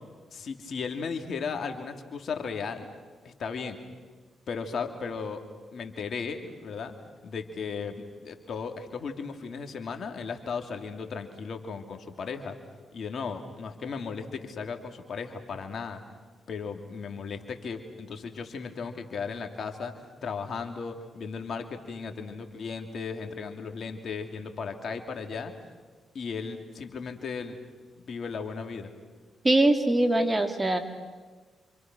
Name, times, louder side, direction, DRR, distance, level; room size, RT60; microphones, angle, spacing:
voice 1, 0.3-2.9 3.2-3.8 4.5-5.4 5.7-6.9 7.2-12.6 12.9-16.0 16.5-25.5 26.1-27.6 28.0-28.9, left 5 dB, 60° left, 5 dB, 2.8 m, -36 dB
voice 2, 29.4-30.8, right 1 dB, 25° right, 6 dB, 3.2 m, -22 dB
30.0 x 26.5 x 6.2 m, 1.4 s
supercardioid pair, 50°, 0 cm